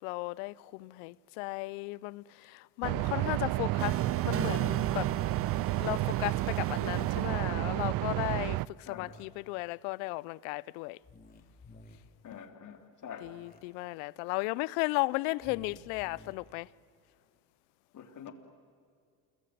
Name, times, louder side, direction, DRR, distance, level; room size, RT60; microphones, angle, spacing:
voice 1, 0.0-5.1 5.8-11.0 13.2-16.7, left 23 dB, 75° left, 0.7 m, -35 dB
sound 1, 2.8-8.7, right 18 dB, 55° right, 0.6 m, -31 dB
sound 2, 3.8-8.0, right 8 dB, 30° right, 1.0 m, -38 dB
voice 2, 8.8-9.2 12.2-13.4 17.9-18.3, left 8 dB, 45° left, 3.4 m, -46 dB
sound 3, 8.9-9.2 11.0-12.0 13.2-13.6 15.4-16.3, left 2 dB, 20° left, 3.7 m, -53 dB
28.5 x 22.0 x 9.4 m
supercardioid pair, 90°, 42 cm